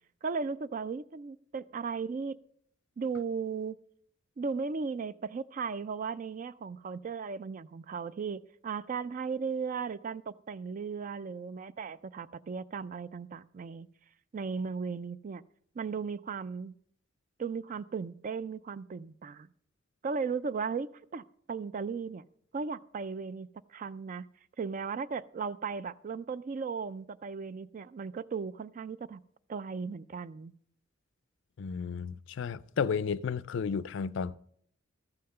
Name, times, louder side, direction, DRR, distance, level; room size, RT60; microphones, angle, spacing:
voice 1, 0.2-2.4 3.0-3.8 4.4-13.9 14.3-15.4 15.8-16.7 17.4-19.5 20.0-22.2 22.5-24.3 24.6-29.2 29.5-30.5, right 5 dB, 40° right, 0.3 m, -36 dB
voice 2, 31.6-34.4, left 6 dB, 65° left, 0.4 m, -33 dB
13.5 x 5.7 x 6.6 m
head